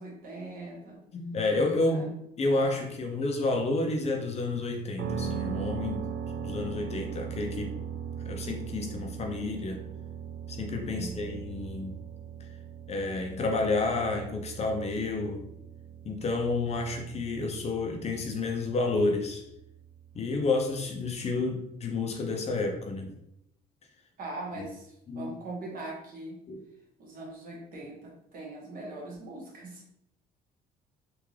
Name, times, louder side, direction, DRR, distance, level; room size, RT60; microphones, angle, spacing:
voice 1, 0.0-1.0 1.8-2.1 10.9-11.4 24.2-26.4 27.0-29.9, right 2 dB, 55° right, -3 dB, 1.4 m, -41 dB
voice 2, 1.1-2.1 2.4-6.1 6.4-7.7 8.2-9.8 10.5-12.0 12.9-15.4 16.0-19.4 20.1-23.1 24.6-24.7 25.1-25.3 26.5-26.6, left 3 dB, 40° left, 2 dB, 0.6 m, -30 dB
sound 1, 5.0-20.8, right 7 dB, 75° right, 0.4 m, -39 dB
3.5 x 2.5 x 3.2 m, 0.80 s
cardioid pair, 110°, 17 cm